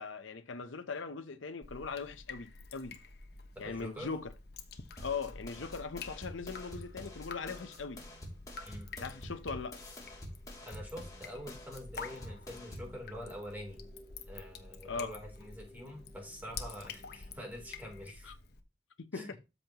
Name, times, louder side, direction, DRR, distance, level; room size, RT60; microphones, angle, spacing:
voice 1, 0.0-3.0 3.6-4.3 5.0-8.0 8.9-9.8 14.8-15.1 18.3-18.4 19.0-19.3, left 4 dB, 90° left, 0.8 m, -40 dB
Drip, 1.6-18.6, left 4 dB, 55° left, 1.1 m, -49 dB
sound 1, 3.1-18.1, equal, 30° right, 3.3 m, -62 dB
voice 2, 3.5-4.1 8.6-8.9 10.6-13.8 14.3-18.3 19.1-19.3, equal, 10° right, 3.4 m, -46 dB
sound 2, 5.0-13.0, left 1 dB, 20° left, 2.8 m, -48 dB
13.0 x 5.3 x 3.0 m
head